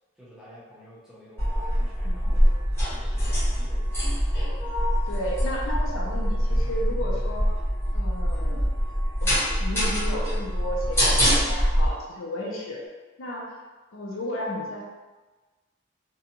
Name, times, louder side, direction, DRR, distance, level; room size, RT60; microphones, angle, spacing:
voice 1, 0.2-4.1, equal, 5° right, -9 dB, 0.6 m, -50 dB
sound 1, 1.4-11.9, equal, 10° left, 0.9 m, -24 dB
voice 2, 5.0-7.5 7.9-8.7 9.2-12.8 13.2-13.5 13.9-14.8, left 1 dB, 90° left, -2 dB, 0.6 m, -33 dB
2.6 x 2.2 x 2.8 m, 1.3 s
head